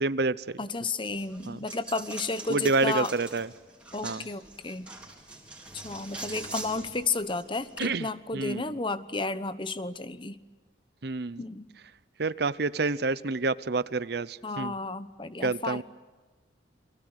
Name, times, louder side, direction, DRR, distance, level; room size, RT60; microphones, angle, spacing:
voice 1, 0.0-0.6 1.5-1.6 2.5-3.5 4.0-4.3 7.8-8.8 11.0-11.4 12.2-14.7 15.4-15.8, right 3 dB, 60° right, 17 dB, 0.8 m, -28 dB
voice 2, 0.6-3.1 3.9-4.9 5.7-10.4 11.4-11.7 14.4-15.8, left 3 dB, 25° left, 13 dB, 1.0 m, -32 dB
Coin (dropping), 1.1-7.8, right 2 dB, 5° right, 4.3 m, -43 dB
29.5 x 24.0 x 8.1 m, 1.3 s
head